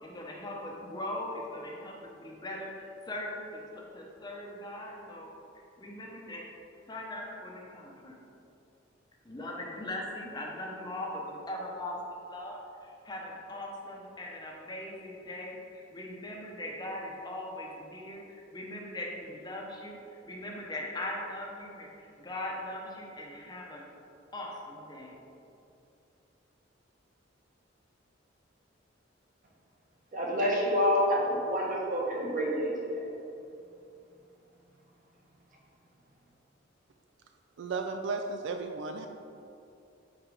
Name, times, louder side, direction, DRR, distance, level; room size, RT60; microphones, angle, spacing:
voice 1, 0.0-5.3 5.8-6.4 6.9-8.2 9.2-12.0 12.3-20.0 20.3-23.8 24.3-25.2, left 1 dB, 20° left, -2 dB, 0.7 m, -40 dB
voice 2, 30.1-33.0, equal, 45° right, -3 dB, 1.2 m, -28 dB
voice 3, 37.6-39.1, right 4 dB, 65° right, 5 dB, 0.3 m, -34 dB
5.0 x 4.2 x 4.9 m, 2.7 s
head